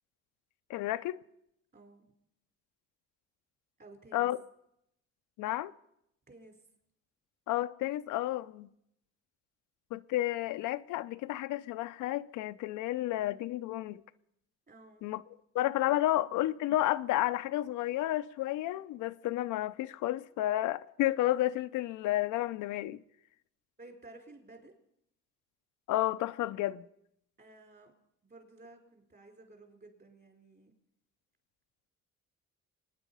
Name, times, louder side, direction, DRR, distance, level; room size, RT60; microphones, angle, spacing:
voice 1, 0.7-1.2 4.1-4.4 5.4-5.7 7.5-8.7 9.9-14.0 15.0-15.2 15.5-23.0 25.9-26.9, left 15 dB, 90° left, 0.6 m, -31 dB
voice 2, 1.7-2.0 3.8-4.3 6.3-6.6 14.7-15.2 16.2-16.3 23.8-24.7 27.4-27.9 28.2-30.7, right 2 dB, 35° right, 4.4 m, -54 dB
26.0 x 9.8 x 5.5 m
cardioid pair, 90°, 30 cm